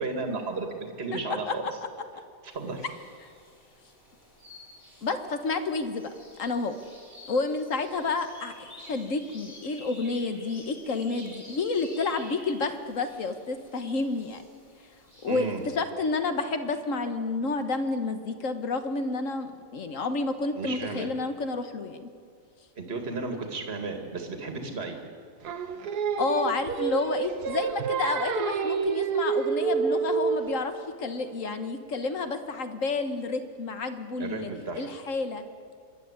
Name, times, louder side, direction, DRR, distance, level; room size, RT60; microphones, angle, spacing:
voice 1, 0.0-1.6 2.5-2.9 11.6-11.7 15.3-15.6 20.6-21.1 22.8-25.0 34.2-34.9, right 3 dB, 35° right, 4 dB, 2.2 m, -33 dB
sound 1, 2.5-15.8, left 1 dB, 30° left, 4.8 m, -51 dB
voice 2, 5.0-6.0 6.4-6.8 7.2-14.4 15.2-15.5 15.7-22.1 26.2-30.7 31.0-34.5 34.7-35.4, left 3 dB, 50° left, 8 dB, 1.4 m, -30 dB
Singing, 25.4-30.7, right 6 dB, 60° right, 1.4 m, -28 dB
24.5 x 11.5 x 9.6 m, 2.3 s
omnidirectional pair, 2.0 m